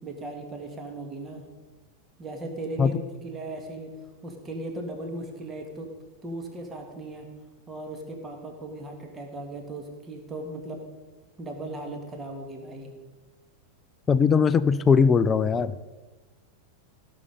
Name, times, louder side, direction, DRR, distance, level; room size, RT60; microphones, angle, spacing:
voice 1, 0.0-1.4 2.2-3.9 4.2-5.9 6.2-7.3 7.7-10.8 11.4-12.9, right 2 dB, 20° right, 3 dB, 1.9 m, -37 dB
voice 2, 14.1-15.7, left 6 dB, 20° left, 15 dB, 0.5 m, -20 dB
17.0 x 7.0 x 5.2 m, 1.2 s
figure-of-eight pair, 90°, 0 cm